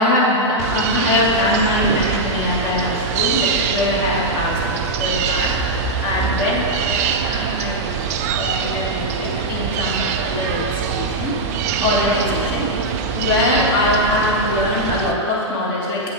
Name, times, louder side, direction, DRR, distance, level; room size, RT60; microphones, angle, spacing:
voice 1, 0.0-8.1 8.3-12.7 13.1-16.0, left 1 dB, 30° left, -4 dB, 1.9 m, -22 dB
sound 1, 0.6-15.1, right 7 dB, 30° right, 0.4 m, -24 dB
8.5 x 6.2 x 4.9 m, 2.7 s
figure-of-eight pair, 115°, 16 cm